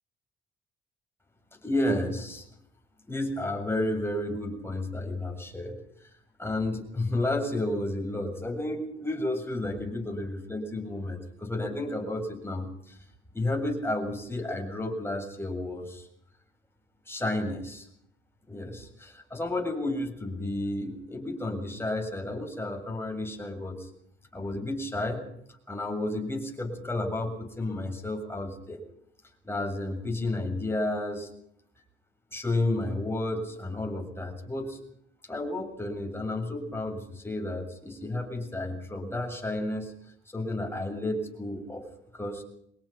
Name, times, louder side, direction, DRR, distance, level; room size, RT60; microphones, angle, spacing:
voice 1, 1.6-2.5 3.1-6.1 6.4-13.0 13.3-16.1 17.1-17.9 18.5-23.9 24.3-25.3 25.7-28.8 29.4-31.3 32.3-34.8 35.3-39.9 40.3-41.9 42.1-42.4, left 1 dB, 10° left, 3 dB, 7.5 m, -32 dB
25.0 x 19.5 x 5.8 m, 0.72 s
cardioid pair, 90°, 20 cm